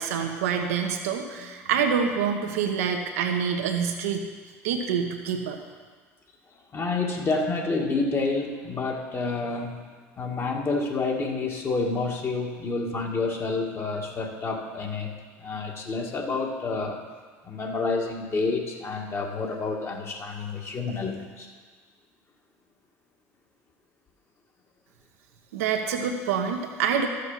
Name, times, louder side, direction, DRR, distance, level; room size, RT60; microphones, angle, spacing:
voice 1, 0.0-4.3 4.6-5.6 25.5-27.1, right 7 dB, 80° right, 3 dB, 1.1 m, -26 dB
voice 2, 6.7-9.9 10.2-15.1 15.4-17.0 17.4-21.5, left 3 dB, 35° left, 0 dB, 2.0 m, -29 dB
13.0 x 6.5 x 5.8 m, 1.5 s
hypercardioid pair, 85°, 8 cm